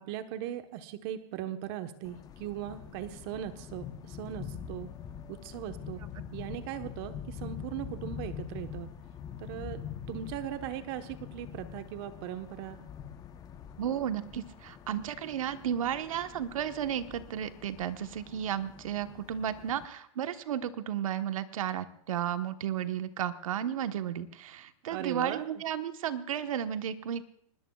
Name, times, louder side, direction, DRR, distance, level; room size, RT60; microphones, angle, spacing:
voice 1, 0.0-4.9 5.3-6.0 6.3-8.9 9.4-9.8 10.1-12.8 24.8-25.4, right 11 dB, 45° right, 8 dB, 1.2 m, -39 dB
sound 1, 2.0-19.9, left 8 dB, 20° left, 0.9 m, -45 dB
voice 2, 13.8-27.2, right 9 dB, 80° right, 9 dB, 1.3 m, -33 dB
24.5 x 21.0 x 2.4 m, 0.68 s
hypercardioid pair, 140°, 17 cm